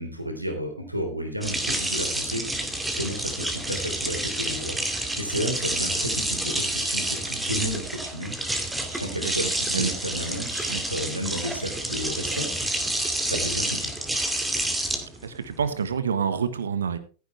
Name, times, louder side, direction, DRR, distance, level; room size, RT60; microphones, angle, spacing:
voice 1, 0.0-8.3 8.7-12.5 13.2-13.9, equal, 90° right, 4 dB, 3.5 m, -32 dB
sound 1, 1.4-15.9, right 1 dB, 5° right, 2.3 m, -29 dB
voice 2, 9.2-9.9 10.7-10.8 15.2-17.0, right 7 dB, 70° right, 12 dB, 1.5 m, -28 dB
14.5 x 10.0 x 3.4 m, 0.36 s
figure-of-eight pair, 90°, 0 cm